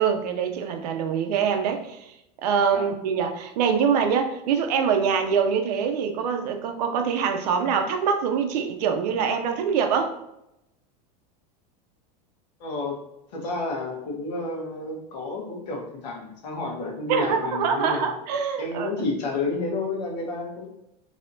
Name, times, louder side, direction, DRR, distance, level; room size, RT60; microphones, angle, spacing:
voice 1, 0.0-2.1 2.4-10.2 17.1-18.9, right 6 dB, 75° right, 6 dB, 0.6 m, -24 dB
voice 2, 12.6-13.0 13.3-18.1 18.5-20.7, left 3 dB, 90° left, -1 dB, 1.2 m, -30 dB
4.0 x 2.8 x 2.7 m, 0.83 s
supercardioid pair, 170°, 21 cm